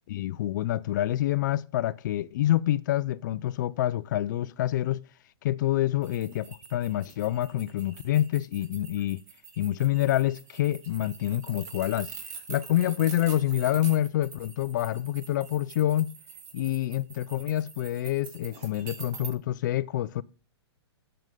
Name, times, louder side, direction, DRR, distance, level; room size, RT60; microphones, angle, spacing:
voice 1, 0.1-5.0 5.4-9.2 9.6-12.1 12.5-16.1 16.5-20.2, left 13 dB, 45° left, 0.4 m, -27 dB
sound 1, 6.0-19.3, right 6 dB, 40° right, 3.1 m, -45 dB
12.5 x 7.8 x 3.7 m
hypercardioid pair, 150°, 14 cm